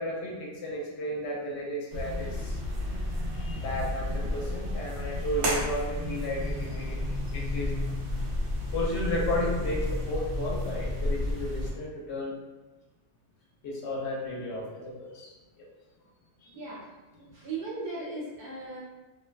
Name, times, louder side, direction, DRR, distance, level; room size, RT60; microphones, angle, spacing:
voice 1, 0.0-2.6 3.3-7.7 8.7-12.3 13.6-15.6 16.4-16.5, left 1 dB, 80° left, -3 dB, 0.9 m, -33 dB
sound 1, 1.9-11.7, left 1 dB, 85° right, 0.9 m, -31 dB
voice 2, 16.5-16.8 17.2-18.8, right 3 dB, 50° right, -7 dB, 0.8 m, -37 dB
2.5 x 2.1 x 2.3 m, 1.2 s
omnidirectional pair, 1.1 m